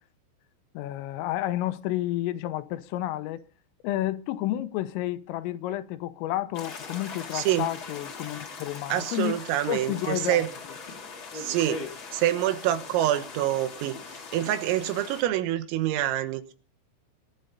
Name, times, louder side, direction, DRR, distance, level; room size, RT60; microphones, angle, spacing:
voice 1, 0.8-3.4 3.8-9.4 9.7-10.5, left 14 dB, 85° left, 3.5 m, -31 dB
sound 1, 6.5-15.2, left 4 dB, 70° left, 1.2 m, -40 dB
voice 2, 7.3-7.7 8.9-10.5 11.3-11.9 12.1-16.5, right 13 dB, 90° right, 3.9 m, -26 dB
23.5 x 10.5 x 4.0 m
omnidirectional pair, 5.8 m